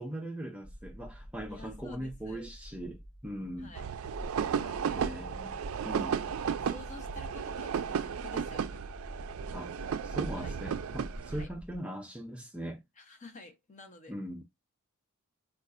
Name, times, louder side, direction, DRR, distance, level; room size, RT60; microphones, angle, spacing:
voice 1, 0.0-3.7 4.9-6.2 9.5-9.7 10.0-12.8 14.1-14.4, equal, 5° right, 0.4 m, -40 dB
sound 1, 0.6-11.8, equal, 75° left, 1.1 m, -47 dB
voice 2, 1.5-2.5 3.6-3.9 4.5-5.4 6.2-8.8 10.4-10.5 11.3-11.5 13.0-14.1, left 3 dB, 35° left, 0.8 m, -50 dB
sound 2, 3.7-11.5, right 7 dB, 75° right, 0.4 m, -34 dB
4.4 x 2.4 x 2.4 m
head